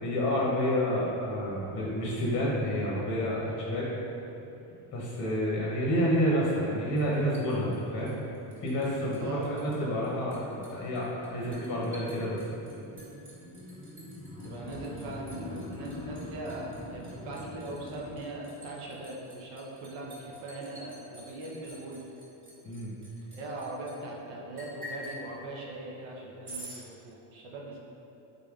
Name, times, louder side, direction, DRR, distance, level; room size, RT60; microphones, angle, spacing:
voice 1, 0.0-3.9 4.9-8.1 8.6-12.5 22.6-22.9, equal, 40° left, -4 dB, 0.7 m, -29 dB
sound 1, 1.4-8.3 8.6-18.2, left 1 dB, 10° left, 0.4 m, -46 dB
Liquid, 7.0-8.9 9.1-9.8 10.0-23.9 24.6-25.2 26.4-26.8, equal, 25° right, 1.1 m, -48 dB
voice 2, 9.2-9.6 14.4-22.0 23.3-27.8, right 2 dB, 85° right, -3 dB, 0.8 m, -40 dB
3.8 x 3.5 x 2.3 m, 2.9 s
cardioid pair, 120°, 50 cm